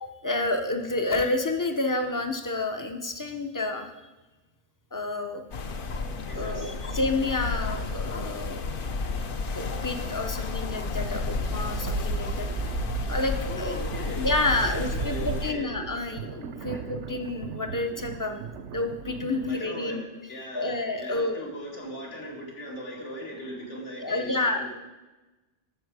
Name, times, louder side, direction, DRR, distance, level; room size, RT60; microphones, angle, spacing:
voice 1, 0.0-3.9 4.9-5.4 6.4-8.6 9.5-12.7 13.1-13.7 14.2-18.4 18.7-20.0 20.5-21.4 24.0-24.6, left 2 dB, 20° left, 5 dB, 0.6 m, -29 dB
sound 1, 5.5-15.5, left 3 dB, 50° left, 0.9 m, -32 dB
voice 2, 6.3-6.8 13.5-15.8 16.6-16.9 19.5-24.8, equal, 75° left, -2 dB, 2.5 m, -39 dB
sound 2, 10.9-19.6, right 7 dB, 75° right, 0.9 m, -36 dB
13.0 x 6.5 x 4.8 m, 1.1 s
omnidirectional pair, 1.2 m